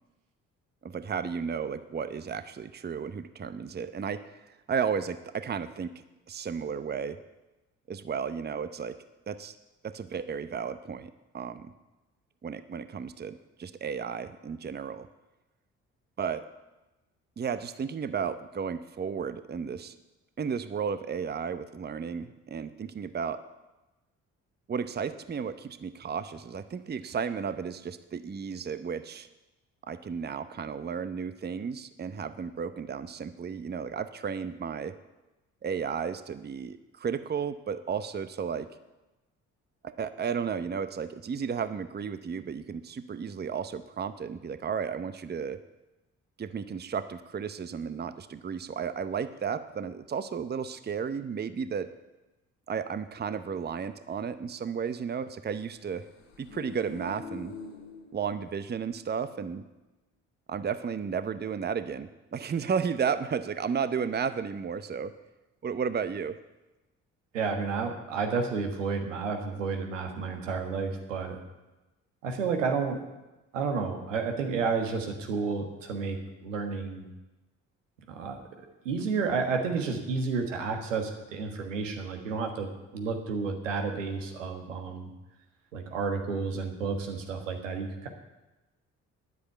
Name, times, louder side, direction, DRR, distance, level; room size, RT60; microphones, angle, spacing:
voice 1, 0.8-7.2 7.9-9.0 9.3-9.5 9.8-11.7 12.4-15.1 16.2-16.5 17.4-19.9 20.4-23.4 24.7-29.3 29.9-34.9 35.6-38.7 39.8-45.6 46.4-51.9 52.7-56.0 56.4-57.5 58.1-59.6 60.5-65.1 65.6-66.4, right 6 dB, 25° right, 12 dB, 0.8 m, -33 dB
sound 1, 56.1-58.8 59.1-59.2, left 3 dB, 80° left, 2.7 m, -44 dB
voice 2, 67.3-71.4 72.2-73.0 73.5-77.0 78.1-78.4 78.8-85.1 85.7-88.1, right 5 dB, 90° right, 4 dB, 1.5 m, -31 dB
10.0 x 8.5 x 8.4 m, 1.1 s
hypercardioid pair, 45°, 37 cm